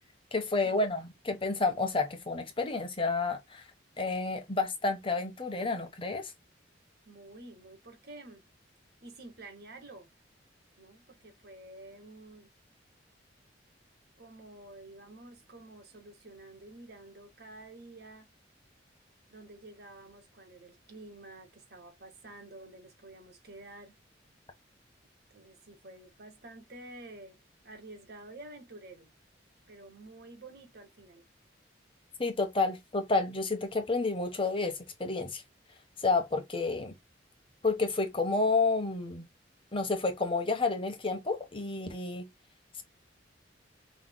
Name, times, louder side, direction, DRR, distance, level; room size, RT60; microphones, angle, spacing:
voice 1, 0.3-3.6 4.0-6.3 32.2-35.4 36.0-36.9 37.6-39.3 39.7-42.3, left 3 dB, 30° left, 1.1 m, -30 dB
voice 2, 7.0-8.4 9.0-10.1 10.8-12.5 14.2-18.3 19.3-24.0 25.3-27.4 27.6-29.1 29.7-31.2, right 2 dB, 60° right, 1.7 m, -50 dB
5.8 x 3.3 x 2.2 m
head